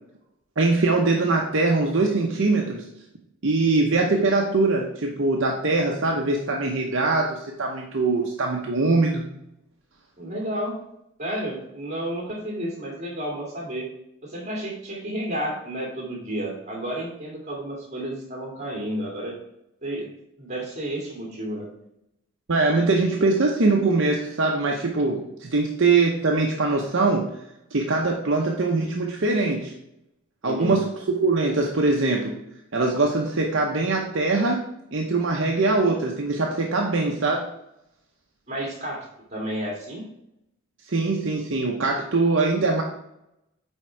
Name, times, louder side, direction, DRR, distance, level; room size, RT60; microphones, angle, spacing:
voice 1, 0.6-2.8 3.4-9.2 22.5-27.2 27.7-29.7 30.4-32.4 32.7-34.6 34.9-37.4 40.9-42.8, right 3 dB, 60° right, 0 dB, 0.8 m, -22 dB
voice 2, 10.2-10.8 11.2-13.9 14.2-19.4 19.8-20.1 20.4-21.7 30.4-30.8 38.5-40.0, right 1 dB, 30° right, -2 dB, 2.3 m, -31 dB
8.9 x 3.6 x 4.5 m, 0.83 s
head